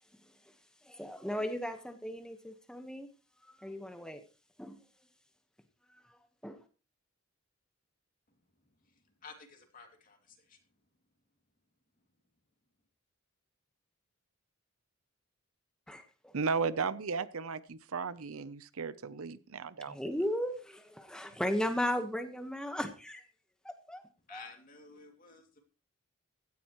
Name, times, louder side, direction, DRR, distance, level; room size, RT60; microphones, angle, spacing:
voice 1, 0.8-3.1 3.6-4.2 4.6-4.8 6.1-6.2 6.4-6.6 15.9-16.3 19.9-23.2 23.6-24.0 24.3-24.4, equal, 5° left, 6 dB, 1.3 m, -36 dB
voice 2, 8.8-10.6 24.3-25.6, left 4 dB, 40° left, 3 dB, 2.6 m, -53 dB
voice 3, 16.3-20.0, right 5 dB, 75° right, 16 dB, 0.7 m, -35 dB
16.5 x 13.5 x 3.1 m, 0.33 s
head